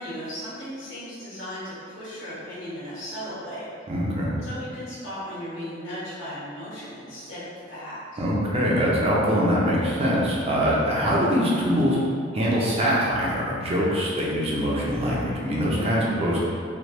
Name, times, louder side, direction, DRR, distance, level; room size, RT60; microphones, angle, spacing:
voice 1, 0.0-3.7 4.4-8.2, equal, 80° left, -11 dB, 1.2 m, -36 dB
voice 2, 3.9-4.3 8.2-12.0 12.3-16.4, equal, 30° right, -5 dB, 0.6 m, -23 dB
3.3 x 3.1 x 2.4 m, 2.3 s
head